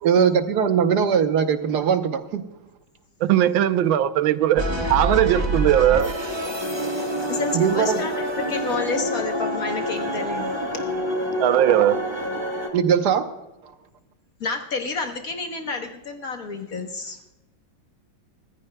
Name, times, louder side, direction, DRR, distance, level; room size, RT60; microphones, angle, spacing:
voice 1, 0.0-2.4 7.5-8.0 12.7-13.3, right 7 dB, 60° right, 1.3 m, -20 dB
voice 2, 3.2-6.1 11.4-12.0, right 12 dB, 80° right, 1.5 m, -19 dB
sound 1, 4.6-12.7, equal, 15° right, 1.2 m, -27 dB
voice 3, 7.2-10.6 14.4-17.2, left 4 dB, 50° left, 1.3 m, -30 dB
24.0 x 14.5 x 2.2 m
omnidirectional pair, 2.2 m